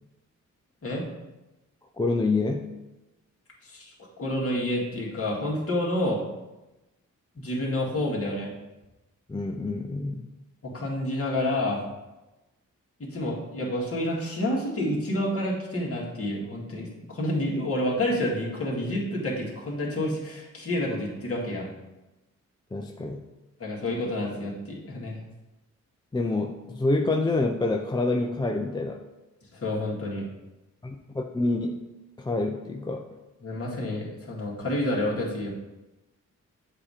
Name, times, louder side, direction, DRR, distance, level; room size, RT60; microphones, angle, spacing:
voice 1, 2.0-2.7 9.3-10.3 22.7-23.2 26.1-29.0 30.8-33.1, left 2 dB, 15° left, 3 dB, 0.4 m, -27 dB
voice 2, 3.6-6.2 7.4-8.5 10.6-11.9 13.0-21.7 23.6-25.2 29.5-30.3 33.4-35.5, left 1 dB, 45° left, -4 dB, 1.9 m, -29 dB
7.4 x 2.8 x 4.9 m, 1.0 s
cardioid pair, 75°, 32 cm